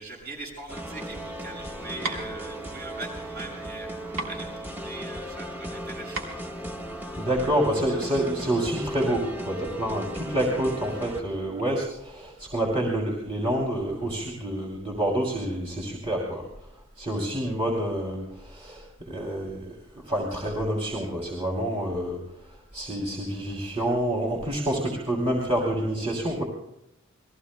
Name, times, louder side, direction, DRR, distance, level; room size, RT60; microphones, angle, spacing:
voice 1, 0.0-6.3, right 2 dB, 50° right, -1 dB, 6.4 m, -41 dB
sound 1, 0.7-11.2, equal, 10° right, 1.4 m, -37 dB
sound 2, 1.5-7.5, right 3 dB, 70° right, 3.0 m, -38 dB
voice 2, 7.2-16.5 17.0-19.7 20.1-22.2 22.5-26.4, right 1 dB, 30° right, -2 dB, 3.1 m, -28 dB
29.0 x 21.0 x 2.2 m, 0.82 s
head